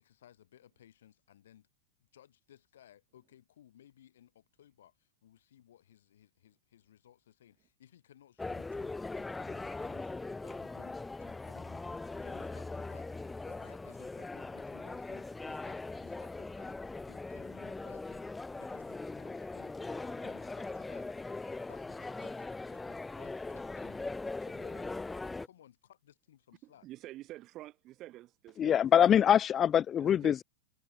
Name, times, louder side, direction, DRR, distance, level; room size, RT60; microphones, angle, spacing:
voice 1, 0.0-1.7 2.1-18.3 18.6-25.1 25.4-26.9, left 11 dB, 60° left, 6.6 m, -61 dB
sound 1, 8.4-25.5, left 3 dB, 10° left, 1.3 m, -40 dB
voice 2, 26.6-28.8 30.0-30.4, right 15 dB, 35° right, 1.9 m, -48 dB
voice 3, 28.6-30.4, left 9 dB, 25° left, 0.3 m, -24 dB
figure-of-eight pair, 90°, 0 cm